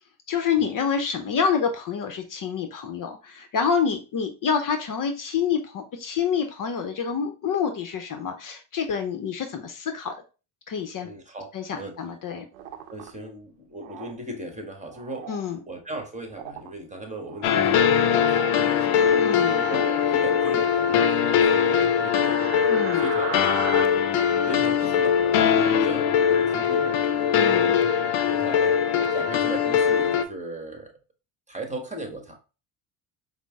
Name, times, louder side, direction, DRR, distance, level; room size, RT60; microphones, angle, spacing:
voice 1, 0.3-10.1 10.7-11.1 11.5-12.5 15.3-15.6 19.2-19.6 22.7-23.1 27.3-27.8, left 6 dB, 45° left, 6 dB, 0.7 m, -27 dB
voice 2, 11.0-11.5 11.8-12.0 12.3-12.5 12.9-15.4 15.7-19.1 19.5-23.7 24.5-27.8 28.3-28.7 29.1-30.9 31.5-32.5, right 1 dB, 15° right, 3 dB, 1.2 m, -38 dB
sound 1, 12.5-13.1 13.8-14.1 14.9-15.4 16.3-16.7 17.2-17.8 18.1-18.5 19.5-19.9 20.3-21.3 22.2-23.8, right 8 dB, 85° right, 0.7 m, -37 dB
sound 2, 17.4-30.2, left 8 dB, 80° left, 0.6 m, -21 dB
5.0 x 2.0 x 3.4 m, 0.32 s
supercardioid pair, 75°, 45 cm